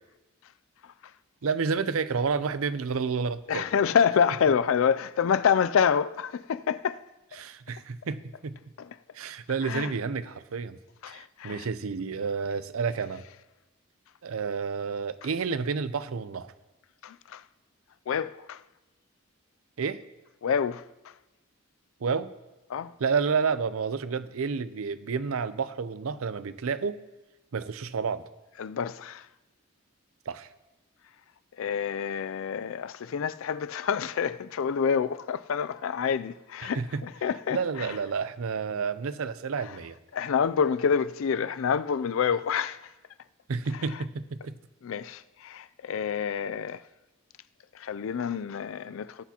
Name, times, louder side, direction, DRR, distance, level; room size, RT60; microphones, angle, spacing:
voice 1, 1.4-3.6 7.4-8.6 9.1-10.8 11.1-13.2 14.2-16.5 19.8-20.0 22.0-22.3 23.0-27.0 27.5-28.2 30.3-30.5 36.6-37.0 37.5-40.0 43.5-44.6, right 5 dB, 75° right, 0.5 m, -30 dB
voice 2, 3.5-7.0 8.8-9.0 9.6-9.9 11.0-11.7 17.0-17.4 18.1-18.6 20.4-21.1 22.7-22.9 28.6-29.3 31.6-38.0 40.1-42.9 43.7-44.0 44.8-46.8 47.7-49.2, left 7 dB, 65° left, 0.4 m, -27 dB
19.5 x 8.3 x 2.9 m
head